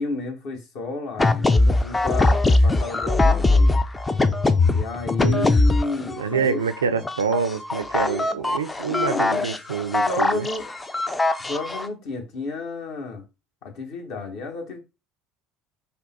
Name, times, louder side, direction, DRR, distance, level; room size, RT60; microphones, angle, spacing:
voice 1, 0.0-3.8 4.6-6.6 8.9-9.5 10.1-10.7 11.4-13.2 13.6-14.8, left 3 dB, 55° left, 1.0 m, -31 dB
sound 1, 1.2-6.5 6.7-11.9, left 2 dB, 15° left, 0.4 m, -21 dB
voice 2, 6.2-10.5, right 6 dB, 75° right, 0.3 m, -26 dB
3.6 x 2.2 x 4.1 m
figure-of-eight pair, 60°, 0 cm